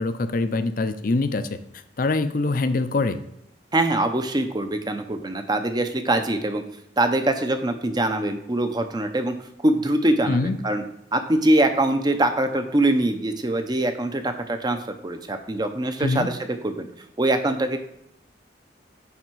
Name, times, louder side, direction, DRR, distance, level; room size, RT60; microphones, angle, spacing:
voice 1, 0.0-1.5 2.0-3.2 10.3-10.6 16.0-16.3, left 3 dB, 45° left, 11 dB, 0.5 m, -23 dB
voice 2, 3.7-6.6 7.0-9.3 9.6-10.8 11.1-14.8 15.0-16.9 17.2-17.8, right 1 dB, 20° right, 7 dB, 0.6 m, -23 dB
8.7 x 3.5 x 4.6 m, 0.76 s
head